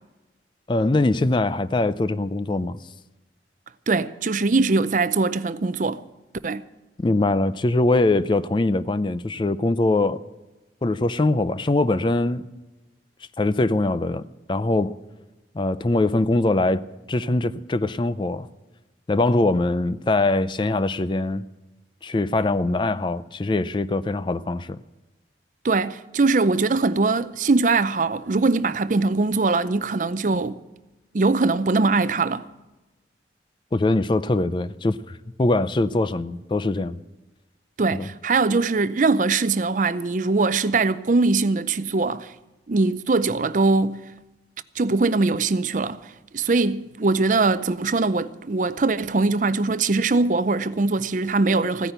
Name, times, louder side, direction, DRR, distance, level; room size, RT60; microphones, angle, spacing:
voice 1, 0.7-2.8 7.0-10.2 10.8-12.5 13.4-15.0 15.6-16.8 17.1-18.5 19.1-21.5 22.0-24.8 33.7-37.0 37.9-38.1, left 2 dB, 25° left, 0.4 m, -22 dB
voice 2, 3.9-6.0 6.4-6.6 25.6-30.6 31.1-32.4 37.8-42.3 42.7-44.0 44.8-51.9, right 3 dB, 45° right, 0.5 m, -22 dB
15.5 x 10.0 x 7.9 m
head